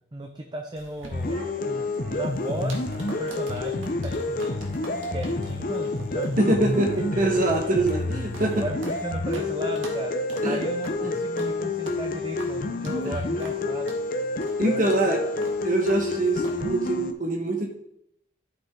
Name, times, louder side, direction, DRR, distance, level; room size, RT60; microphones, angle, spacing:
voice 1, 0.1-1.4 1.6-4.7 5.1-6.9 7.1-7.5 8.5-10.2 10.4-13.9 14.7-15.3, equal, 20° right, 3 dB, 0.6 m, -35 dB
sound 1, 0.8-9.0 9.3-9.5 9.8-10.0 10.3-10.5 10.8-11.0 11.4-11.5 11.9-12.0 12.4-12.5 12.8-13.0 13.4-13.6 13.9-14.0 14.4-14.6 14.8-15.0 15.4-15.6 15.9-16.0 16.4-16.6, right 1 dB, 90° right, 2.1 m, -43 dB
sound 2, 1.1-17.1, left 2 dB, 45° left, 0.7 m, -29 dB
voice 2, 6.4-8.6 10.4-10.6 14.6-15.2 15.6-17.7, right 2 dB, 40° right, 1 dB, 1.3 m, -24 dB
13.0 x 5.2 x 3.8 m, 0.75 s
head